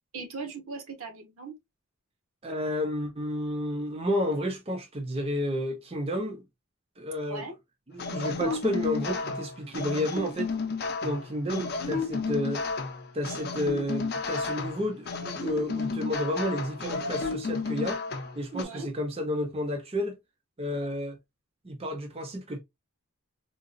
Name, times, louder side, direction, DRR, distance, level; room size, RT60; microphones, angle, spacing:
voice 1, 0.1-1.6 7.3-7.5 8.4-8.6 18.5-18.9 20.7-20.9, right 4 dB, 70° right, 0.9 m, -39 dB
voice 2, 2.4-6.4 7.0-7.5 7.9-10.5 11.0-12.6 13.1-18.0 18.4-20.2 20.6-21.2 21.6-22.6, left 1 dB, 25° right, 0.6 m, -31 dB
sound 1, 8.0-18.6, left 4 dB, 45° left, 0.6 m, -32 dB
3.8 x 2.3 x 2.5 m
head